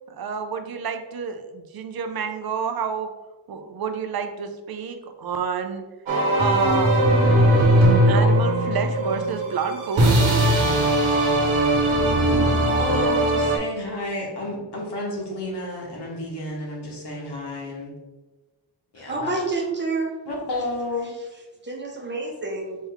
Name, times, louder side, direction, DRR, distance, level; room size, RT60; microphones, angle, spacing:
voice 1, 0.1-3.1 3.5-5.8 6.3-7.0 8.1-10.3, right 6 dB, 50° right, 7 dB, 0.6 m, -29 dB
sound 1, 6.1-13.6, right 1 dB, 85° right, 1.3 m, -19 dB
voice 2, 12.8-17.9 18.9-19.3 20.3-21.1, left 1 dB, 60° left, -2 dB, 1.5 m, -31 dB
voice 3, 19.0-20.1 21.6-22.8, right 3 dB, 25° right, 0 dB, 1.0 m, -28 dB
4.2 x 3.6 x 3.5 m, 1.2 s
wide cardioid pair, 105°, 46 cm